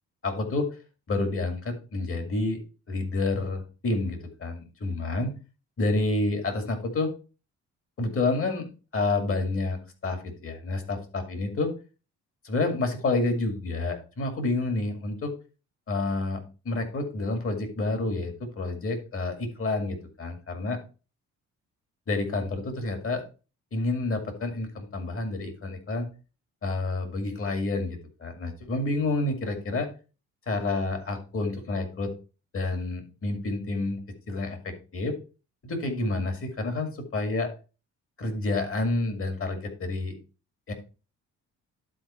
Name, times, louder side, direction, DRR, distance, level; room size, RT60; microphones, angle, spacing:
voice 1, 0.2-0.7 1.1-2.6 2.9-5.3 5.8-7.1 8.0-8.7 8.9-11.7 12.4-15.3 15.9-20.8 22.1-23.2 23.7-26.1 26.6-29.9 30.5-32.1 32.5-34.0 34.3-35.1 35.6-37.5 38.2-40.2 40.7-40.8, left 2 dB, 45° left, 5 dB, 2.3 m, -29 dB
11.5 x 4.1 x 4.3 m, 0.34 s
cardioid pair, 90°, 30 cm